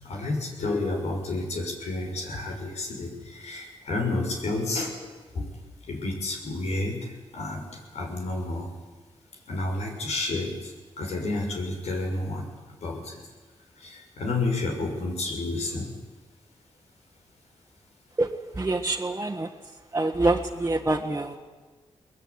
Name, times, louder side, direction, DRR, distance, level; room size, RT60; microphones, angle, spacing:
voice 1, 0.0-5.5 5.9-8.7 9.5-12.5 12.8-13.2 13.8-15.9, left 2 dB, 85° left, 2 dB, 6.1 m, -30 dB
voice 2, 18.5-19.5 19.9-21.4, right 2 dB, 25° right, 0 dB, 1.6 m, -25 dB
22.5 x 20.0 x 9.8 m, 1.3 s
cardioid pair, 90°, 11 cm